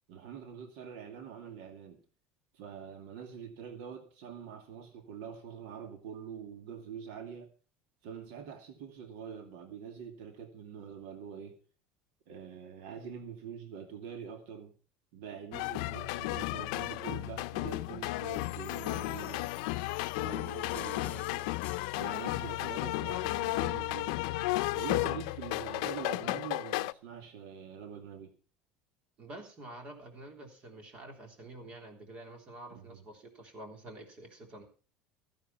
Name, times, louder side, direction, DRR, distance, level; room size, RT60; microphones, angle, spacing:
voice 1, 0.1-2.0 2.5-7.5 8.0-11.6 12.3-14.7 15.1-19.4 20.2-21.5 21.9-24.3 24.7-28.3 32.7-33.0, right 7 dB, 75° right, 2.3 m, -45 dB
sound 1, 15.5-26.9, left 19 dB, 80° left, 0.6 m, -34 dB
sound 2, 18.2-22.6, left 14 dB, 45° left, 1.6 m, -50 dB
voice 2, 20.8-21.2 29.2-34.7, right 1 dB, 30° right, 3.5 m, -48 dB
14.5 x 10.0 x 5.8 m
cardioid pair, 165°, 4 cm